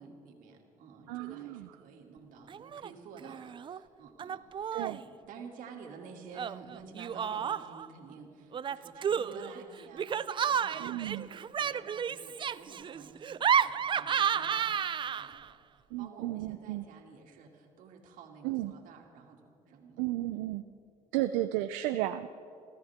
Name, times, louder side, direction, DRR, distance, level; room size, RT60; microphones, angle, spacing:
voice 1, 0.0-15.6 16.0-20.0 21.1-21.3, right 5 dB, 70° right, 1 dB, 2.7 m, -51 dB
voice 2, 1.1-1.7 4.7-5.0 10.8-11.3 15.9-16.8 18.4-18.7 20.0-20.6 21.1-22.3, right 15 dB, 85° right, 8 dB, 0.5 m, -33 dB
Laughter, 2.5-2.9 3.2-3.8 4.2-5.0 6.3-7.9 8.5-15.5, right 8 dB, 35° right, 0.5 m, -32 dB
29.0 x 13.5 x 3.7 m, 2.5 s
supercardioid pair, 80°, 14 cm